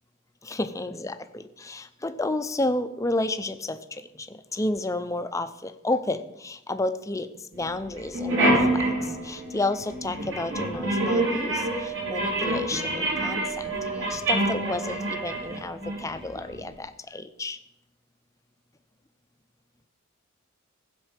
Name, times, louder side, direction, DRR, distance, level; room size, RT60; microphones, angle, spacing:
voice 1, 0.4-17.6, left 2 dB, 15° left, 10 dB, 0.6 m, -31 dB
sound 1, 7.6-7.7 8.0-16.6, right 1 dB, 65° right, 3.9 m, -27 dB
15.0 x 5.4 x 7.4 m, 0.87 s
head